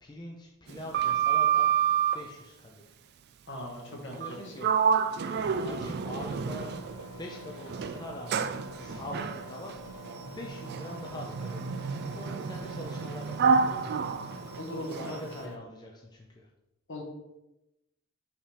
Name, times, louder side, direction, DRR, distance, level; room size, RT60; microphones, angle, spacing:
voice 1, 0.0-1.7 2.1-2.8 3.9-4.9 5.4-6.7 7.0-13.9 14.8-16.5, left 1 dB, 20° left, -1 dB, 0.6 m, -44 dB
Sliding door, 0.7-2.3 4.1-4.4 4.6-7.1 7.7-15.2, right 7 dB, 50° right, 0.4 m, -29 dB
voice 2, 3.5-4.5 14.6-15.2 16.9-17.0, left 1 dB, 60° left, 0 dB, 1.5 m, -39 dB
Engine, 6.3-15.6, right 1 dB, 75° left, 0.7 m, -46 dB
5.6 x 5.6 x 3.4 m, 0.95 s
head